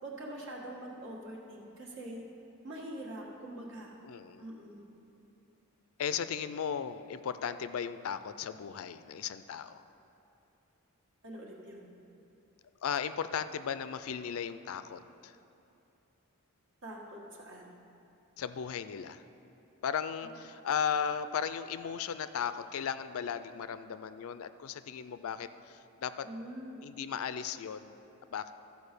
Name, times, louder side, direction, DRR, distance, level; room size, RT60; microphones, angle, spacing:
voice 1, 0.0-2.2 2.6-3.9 4.4-4.8 11.2-11.9 16.8-17.7 26.2-26.8, right 1 dB, 60° right, -2 dB, 1.7 m, -44 dB
voice 2, 4.0-4.5 6.0-9.8 12.8-15.4 18.4-19.2 19.8-26.3 26.8-27.9 28.3-28.5, left 7 dB, 65° left, 12 dB, 0.4 m, -36 dB
13.5 x 4.7 x 6.7 m, 2.8 s
head